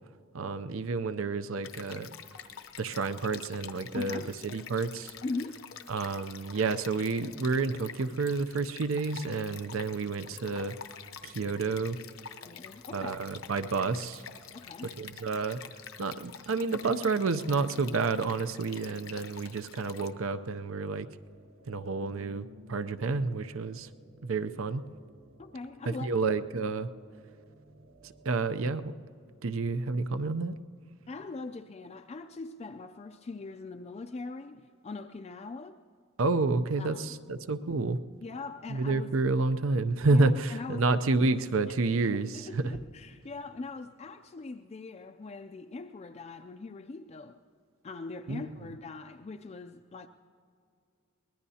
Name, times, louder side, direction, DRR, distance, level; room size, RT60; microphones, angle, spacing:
voice 1, 0.3-2.1 2.8-5.1 5.9-10.7 11.2-12.0 12.9-14.2 14.8-15.6 16.0-21.1 21.7-23.9 24.2-24.8 26.0-26.9 28.0-28.9 29.4-30.6 36.2-38.0 38.7-42.7 48.3-48.4, right 3 dB, 70° right, 0.6 m, -29 dB
Stream, 1.6-20.1, left 8 dB, 70° left, 0.8 m, -47 dB
voice 2, 3.9-4.3 5.2-5.7 12.5-13.2 14.5-14.9 25.4-26.3 31.1-35.8 36.8-37.2 38.2-39.1 40.1-41.2 42.0-47.4 47.8-50.1, left 3 dB, 30° left, 0.4 m, -41 dB
sound 1, 21.2-28.9, left 1 dB, 55° right, 1.4 m, -57 dB
23.5 x 19.5 x 2.8 m
head